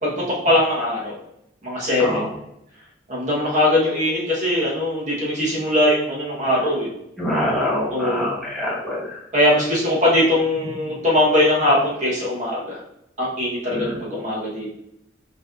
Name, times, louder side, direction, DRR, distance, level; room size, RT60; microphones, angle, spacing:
voice 1, 0.0-1.2 1.6-2.3 3.1-6.9 7.9-8.3 9.3-12.8 13.2-14.7, left 1 dB, 40° right, -6 dB, 1.3 m, -21 dB
voice 2, 7.2-9.2 13.7-13.9, left 1 dB, ahead, -7 dB, 1.2 m, -25 dB
6.3 x 3.3 x 2.6 m, 0.79 s
head